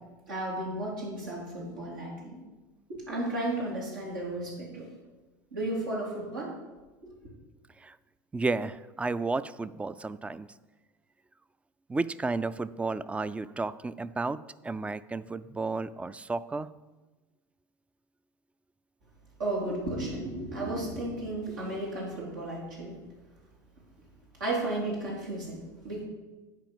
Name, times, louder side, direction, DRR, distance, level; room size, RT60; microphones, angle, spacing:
voice 1, 0.3-2.4 2.9-4.9 5.5-6.5 7.0-7.1 19.4-23.0 24.4-26.0, right 1 dB, 85° right, -4 dB, 3.3 m, -34 dB
voice 2, 8.3-10.5 11.9-14.4 14.6-16.7, right 3 dB, 10° right, 16 dB, 0.3 m, -32 dB
9.0 x 4.8 x 6.9 m, 1.2 s
hypercardioid pair, 85°, 10 cm